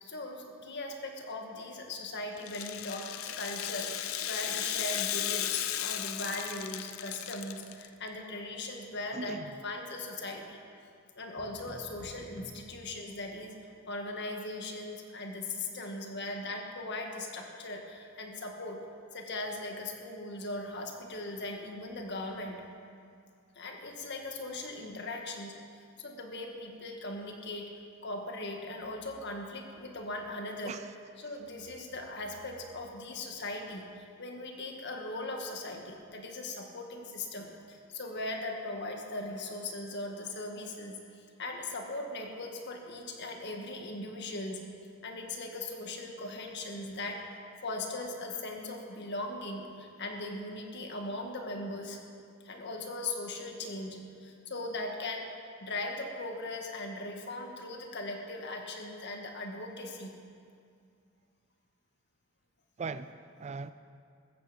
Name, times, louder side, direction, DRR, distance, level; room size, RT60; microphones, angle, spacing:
voice 1, 0.0-10.6 11.2-13.6 13.9-18.8 19.1-22.6 23.6-25.6 26.0-27.7 28.0-30.8 31.2-44.6 45.0-52.0 52.4-55.3 55.6-60.1, left 2 dB, 55° left, 3 dB, 1.8 m, -39 dB
Rattle (instrument), 2.4-7.9, left 11 dB, 85° left, 0.7 m, -35 dB
voice 2, 9.1-9.5 30.6-30.8 62.8-63.7, right 4 dB, 35° right, 12 dB, 0.4 m, -39 dB
sound 1, 11.4-13.6, equal, 15° right, 1.7 m, -52 dB
14.5 x 14.0 x 5.2 m, 2.3 s
head